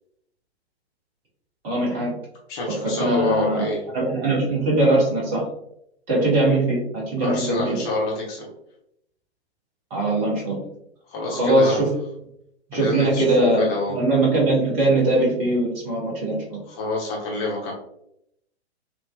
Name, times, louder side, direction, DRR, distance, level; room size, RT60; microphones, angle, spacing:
voice 1, 1.6-2.1 2.8-3.7 3.9-5.4 6.1-7.8 9.9-10.6 11.3-11.9 12.7-16.6, right 2 dB, 10° right, -5 dB, 0.3 m, -21 dB
voice 2, 2.5-3.8 7.2-8.5 11.1-11.8 12.7-13.9 16.7-17.7, left 2 dB, 30° left, -3 dB, 1.0 m, -27 dB
3.2 x 2.8 x 2.2 m, 0.76 s
figure-of-eight pair, 115°, 34 cm